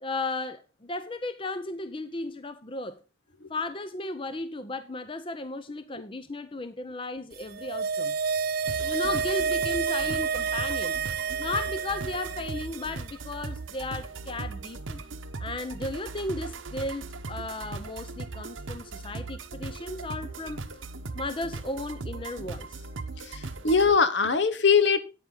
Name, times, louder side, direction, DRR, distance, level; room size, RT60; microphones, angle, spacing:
voice 1, 0.0-3.0 3.5-8.2 8.8-11.0 11.4-15.0 15.4-20.6 21.1-22.8, left 2 dB, 25° left, 0.6 m, -35 dB
sound 1, 7.4-12.9 13.2-13.3, right 6 dB, 50° right, 0.4 m, -29 dB
sound 2, 8.7-23.9, right 3 dB, 90° right, 1.0 m, -39 dB
voice 2, 23.2-25.0, left 5 dB, 60° left, 1.0 m, -22 dB
9.9 x 8.9 x 3.8 m
head